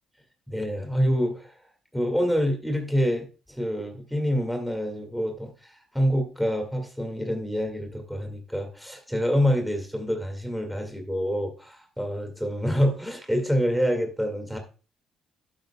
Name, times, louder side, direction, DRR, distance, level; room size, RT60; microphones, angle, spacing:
voice 1, 0.5-1.5 1.9-14.6, equal, ahead, 4 dB, 2.1 m, -27 dB
12.0 x 7.9 x 2.3 m, 0.34 s
cardioid pair, 95°, 0 cm